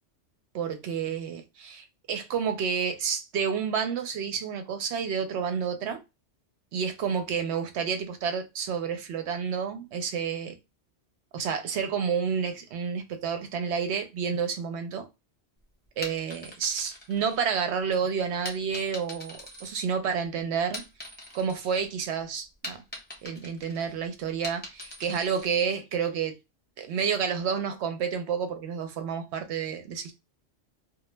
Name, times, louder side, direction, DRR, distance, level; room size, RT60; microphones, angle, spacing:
voice 1, 0.5-6.0 6.7-10.6 11.3-15.1 16.0-20.8 21.3-22.8 23.2-26.4 26.8-30.1, right 6 dB, 70° right, 0.8 m, -30 dB
sound 1, 15.9-17.8 18.4-20.2 20.6-21.9 22.2-25.6, left 1 dB, 10° left, 0.5 m, -42 dB
2.3 x 2.1 x 3.0 m
omnidirectional pair, 1.2 m